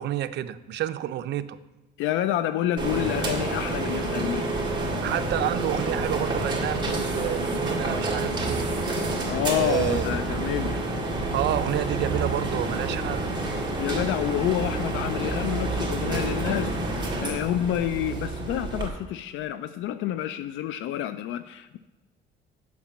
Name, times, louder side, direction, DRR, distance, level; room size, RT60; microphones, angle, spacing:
voice 1, 0.0-1.6 5.0-8.7 9.5-10.6 11.3-13.3, right 12 dB, 60° right, 11 dB, 0.5 m, -29 dB
voice 2, 2.0-4.5 9.3-10.8 13.8-21.8, left 12 dB, 80° left, 12 dB, 0.4 m, -28 dB
sound 1, 2.8-18.9, right 2 dB, 20° right, 1.9 m, -28 dB
7.2 x 6.0 x 7.2 m, 1.1 s
cardioid pair, 120°, 20 cm